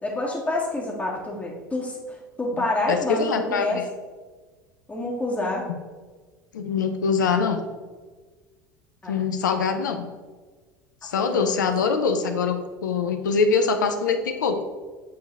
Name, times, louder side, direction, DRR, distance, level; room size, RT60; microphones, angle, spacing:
voice 1, 0.0-3.8 4.9-5.6 9.0-9.2 9.7-9.8 11.2-11.6, left 2 dB, 15° left, -4 dB, 1.8 m, -28 dB
voice 2, 2.6-3.8 6.5-7.6 9.1-10.1 11.0-14.6, left 5 dB, 75° left, 7 dB, 0.8 m, -24 dB
8.5 x 3.9 x 4.3 m, 1.4 s
figure-of-eight pair, 70°, 10 cm